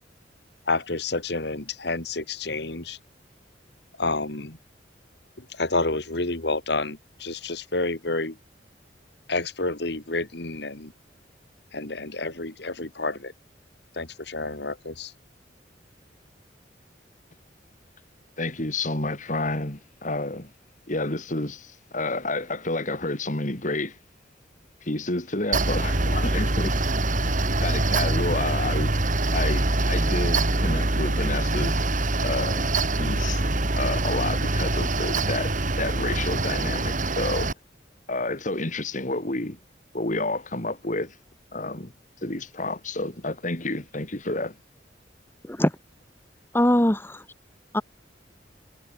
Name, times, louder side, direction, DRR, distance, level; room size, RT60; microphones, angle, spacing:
voice 1, 0.7-3.0 4.0-4.6 5.4-8.4 9.3-10.9 11.7-13.3 14.0-15.1, left 3 dB, 65° left, 2.7 m, -29 dB
voice 2, 18.4-20.5 20.9-24.0 24.8-28.9 29.3-31.8 32.2-32.6 33.0-33.4 33.8-37.5 38.1-39.6 39.9-41.1 41.5-41.9 42.2-44.5, left 2 dB, 45° left, 3.2 m, -30 dB
Mechanical fan, 25.5-37.5, right 2 dB, 45° right, 2.7 m, -24 dB
voice 3, 46.5-47.2 47.7-47.8, left 1 dB, 10° left, 1.8 m, -21 dB
head